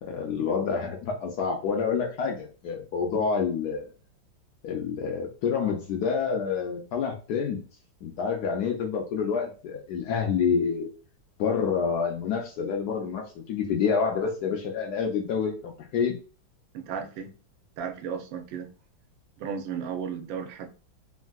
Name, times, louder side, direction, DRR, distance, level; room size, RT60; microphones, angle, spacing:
voice 1, 0.0-3.8 4.6-7.6 8.0-10.9 11.4-16.2, left 6 dB, 70° left, 0.9 m, -28 dB
voice 2, 16.7-17.3 17.8-18.7 19.4-20.7, right 7 dB, 85° right, 1.4 m, -34 dB
3.5 x 2.6 x 2.3 m
omnidirectional pair, 2.1 m